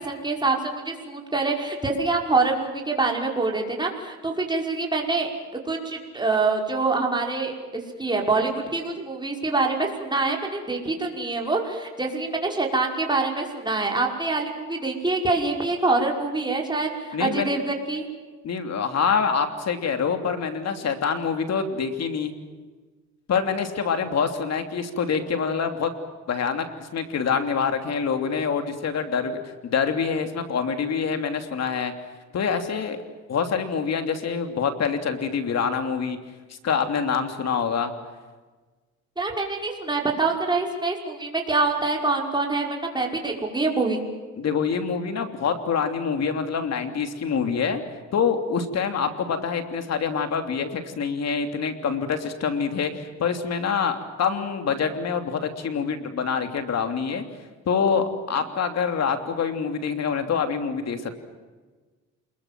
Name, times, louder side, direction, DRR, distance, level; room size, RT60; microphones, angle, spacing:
voice 1, 0.0-5.3 5.7-18.1 39.2-44.0, right 3 dB, 15° right, 0 dB, 5.5 m, -25 dB
voice 2, 17.1-17.5 18.4-22.3 23.3-25.9 26.3-31.9 32.3-33.0 33.3-36.2 36.6-37.9 44.3-47.8 48.1-57.2 57.7-61.1, left 6 dB, 60° left, 7 dB, 3.1 m, -26 dB
28.0 x 21.5 x 7.7 m, 1.3 s
cardioid pair, 90°, 30 cm